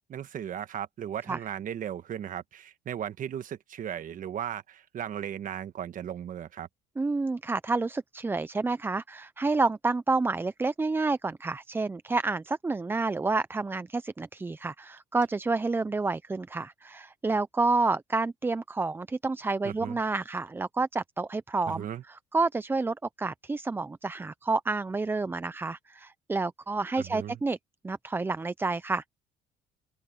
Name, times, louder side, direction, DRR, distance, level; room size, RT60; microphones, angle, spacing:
voice 1, 0.1-6.7 19.6-20.0 21.7-22.0 27.0-27.4, right 9 dB, 50° right, 1.3 m, -36 dB
voice 2, 7.0-21.9 22.3-27.6 27.8-29.0, right 3 dB, 15° right, 0.4 m, -29 dB
open air
cardioid pair, 110°, 17 cm